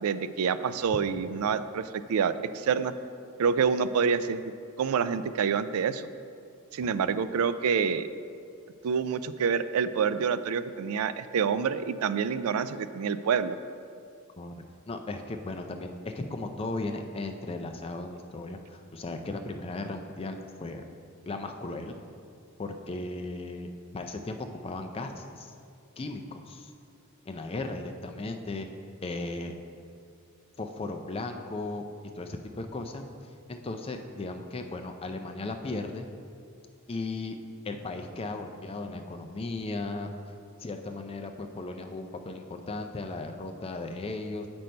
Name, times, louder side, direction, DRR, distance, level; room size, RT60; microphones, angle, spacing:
voice 1, 0.0-2.9 3.4-4.4 4.8-6.1 6.7-8.1 8.8-13.6, right 6 dB, 75° right, 13 dB, 0.3 m, -27 dB
voice 2, 14.9-20.8 21.3-22.0 22.6-23.7 23.9-25.5 26.0-26.7 27.3-28.7 29.0-29.5 30.6-31.8 32.1-33.1 33.5-36.1 36.9-37.4 37.6-40.1 40.6-44.5, left 2 dB, 25° left, 5 dB, 0.4 m, -36 dB
7.8 x 5.2 x 4.4 m, 2.4 s
head